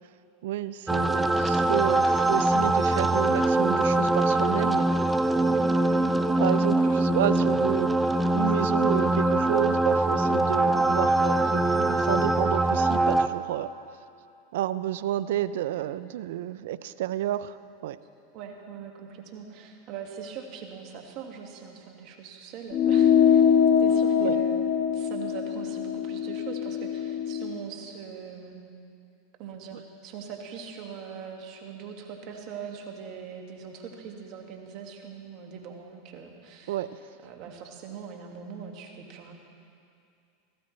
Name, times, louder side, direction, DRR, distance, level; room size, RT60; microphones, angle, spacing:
voice 1, 0.4-4.9 6.4-8.0 8.3-13.7 14.5-18.0 24.2-24.4 36.7-36.9, right 12 dB, 70° right, 15 dB, 0.4 m, -30 dB
sound 1, 0.9-13.3, right 2 dB, 10° right, 0.5 m, -23 dB
voice 2, 5.5-6.2 18.3-23.5 23.8-24.7 24.9-28.6 29.4-36.8 37.2-39.3, right 6 dB, 55° right, 2 dB, 1.8 m, -41 dB
sound 2, 22.7-27.5, left 7 dB, 45° left, 1.0 m, -23 dB
17.5 x 15.0 x 3.2 m, 2.5 s
hypercardioid pair, 105°, 0 cm